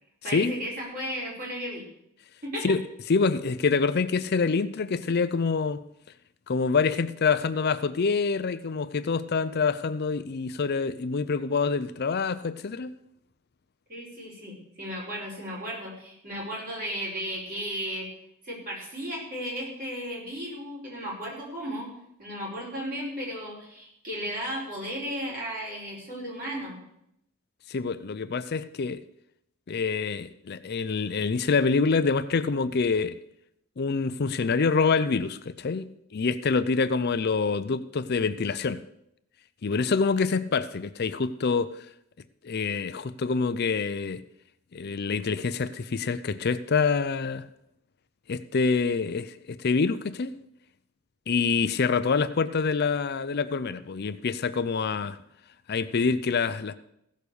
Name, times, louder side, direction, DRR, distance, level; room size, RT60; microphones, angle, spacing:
voice 1, 0.2-1.8 2.4-2.8 13.9-18.1 18.4-21.9 22.2-26.8, equal, 40° right, 4.9 m, -35 dB
voice 2, 3.1-5.8 6.5-12.9 27.7-29.0 29.7-33.2 33.8-38.8 39.6-41.9 42.4-44.2 44.7-47.5 48.3-50.3 51.3-55.2 55.7-56.8, left 4 dB, 45° left, 0.5 m, -26 dB
15.5 x 6.6 x 6.8 m
head